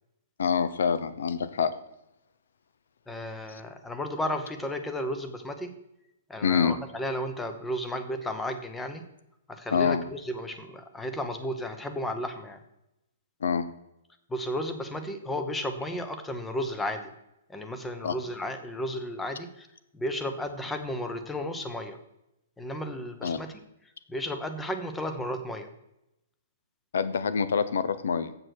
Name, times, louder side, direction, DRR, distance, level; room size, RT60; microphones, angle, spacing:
voice 1, 0.4-1.7 3.5-3.6 6.4-6.8 9.7-10.0 13.4-13.7 18.0-18.1 23.2-23.4 26.9-28.4, left 6 dB, 80° left, 13 dB, 0.8 m, -26 dB
voice 2, 3.1-5.7 6.3-9.0 9.5-12.6 14.3-17.1 17.5-19.7 19.9-22.0 22.6-23.5 24.1-25.7, left 1 dB, 5° left, 8 dB, 0.7 m, -33 dB
7.8 x 6.7 x 6.3 m, 0.86 s
hypercardioid pair, 170°, 0 cm